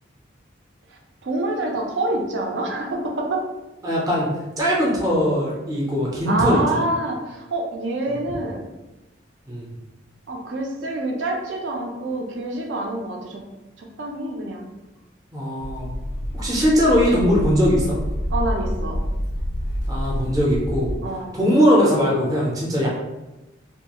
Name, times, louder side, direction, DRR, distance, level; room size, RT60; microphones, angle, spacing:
voice 1, 1.2-3.4 6.3-8.7 10.3-13.4 13.8-14.6 18.3-19.0 21.0-21.3, right 2 dB, 70° right, 1 dB, 0.5 m, -26 dB
voice 2, 3.8-4.3 4.6-6.8 8.3-8.4 9.5-9.7 15.3-15.9 16.3-18.0 19.9-20.9 21.3-22.9, equal, 20° right, -5 dB, 0.5 m, -20 dB
sound 1, 15.6-21.0, equal, 75° left, 0.4 m, -27 dB
2.4 x 2.3 x 2.9 m, 1.0 s
head